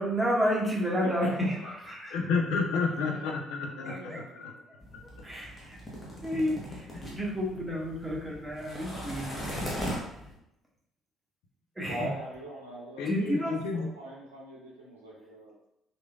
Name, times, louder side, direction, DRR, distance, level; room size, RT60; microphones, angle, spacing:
voice 1, 0.0-2.1 3.8-4.2 4.7-4.8 5.2-5.8 6.2-6.9 7.1-9.4 11.8-12.1 13.0-13.6, equal, 15° right, -4 dB, 1.0 m, -30 dB
voice 2, 2.1-4.5 13.0-13.9, left 4 dB, 60° left, 1 dB, 0.4 m, -30 dB
voice 3, 2.9-3.2 3.7-4.8 11.9-13.1 13.7-15.7, equal, 85° right, -5 dB, 0.7 m, -42 dB
sound 1, 4.8-10.4, equal, 20° left, 1.1 m, -39 dB
3.0 x 2.5 x 2.3 m, 0.84 s
figure-of-eight pair, 45°, 0 cm